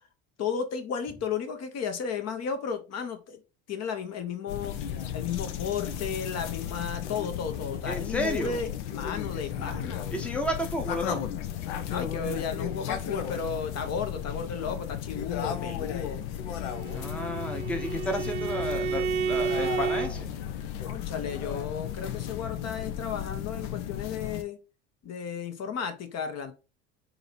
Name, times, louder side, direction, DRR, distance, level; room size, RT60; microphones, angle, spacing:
voice 1, 0.4-3.4 3.7-4.8 5.1-10.1 11.9-16.2 20.8-24.6 25.0-26.5, left 6 dB, 45° left, 1.1 m, -34 dB
sound 1, 4.5-24.4, left 9 dB, 70° left, 0.8 m, -34 dB
voice 2, 7.8-8.6 10.1-11.2 16.9-20.3, equal, 5° left, 0.8 m, -32 dB
Bowed string instrument, 16.6-20.1, right 7 dB, 80° right, 0.8 m, -31 dB
3.8 x 2.8 x 4.5 m
hypercardioid pair, 80°, 36 cm